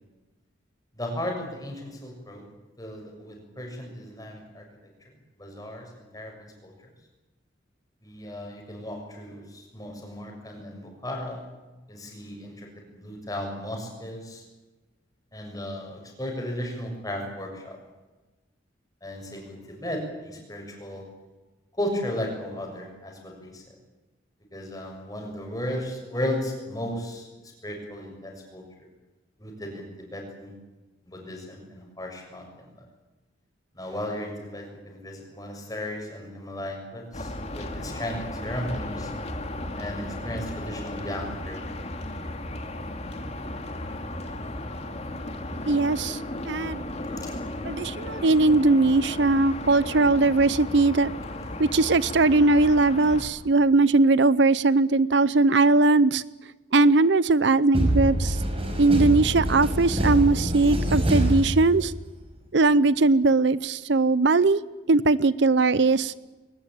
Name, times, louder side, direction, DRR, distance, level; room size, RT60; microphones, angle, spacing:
voice 1, 0.9-2.5 2.8-4.6 5.4-6.7 8.0-11.5 11.9-12.7 12.9-14.4 15.3-17.8 19.0-21.1 21.8-23.6 24.5-27.3 27.6-28.6 29.4-30.6 31.0-32.8 33.7-39.1 39.7-41.7 47.2-47.4, left 1 dB, 20° left, 2 dB, 6.6 m, -35 dB
sound 1, 37.1-53.2, left 1 dB, 35° left, 2.5 m, -35 dB
voice 2, 45.7-46.2 46.5-46.8 47.6-51.1 51.6-56.2 56.7-58.4 58.8-61.9 62.5-64.6 64.9-66.1, right 3 dB, 65° right, 18 dB, 0.7 m, -20 dB
sound 2, 57.7-62.2, right 1 dB, 30° right, 5.1 m, -25 dB
21.5 x 20.0 x 9.0 m, 1.2 s
head